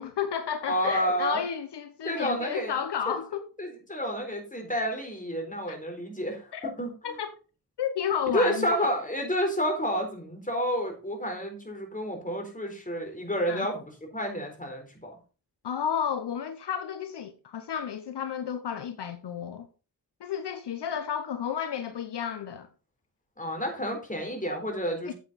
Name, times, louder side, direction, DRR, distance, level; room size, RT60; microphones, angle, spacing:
voice 1, 0.0-3.5 5.7-5.8 6.5-6.7 7.0-7.3 7.8-8.9 13.5-13.7 15.6-19.7 20.2-22.7 25.0-25.1, left 8 dB, 70° left, 0.9 m, -32 dB
voice 2, 0.7-1.4 2.0-2.7 3.1-3.2 3.6-6.5 6.8-6.9 8.3-13.9 14.1-15.1 23.4-25.1, equal, 20° left, 4.0 m, -30 dB
9.0 x 7.5 x 4.1 m
cardioid pair, 60°, 42 cm